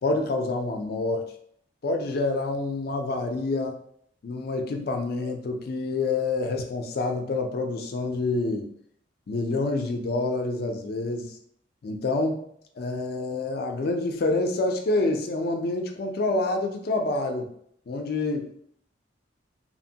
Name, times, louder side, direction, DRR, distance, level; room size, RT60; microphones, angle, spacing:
voice 1, 0.0-1.3 1.8-3.8 4.2-8.7 9.3-11.4 11.8-12.5 12.8-17.5 17.9-18.6, left 2 dB, 50° left, 4 dB, 0.4 m, -27 dB
2.8 x 2.1 x 2.7 m, 0.66 s
head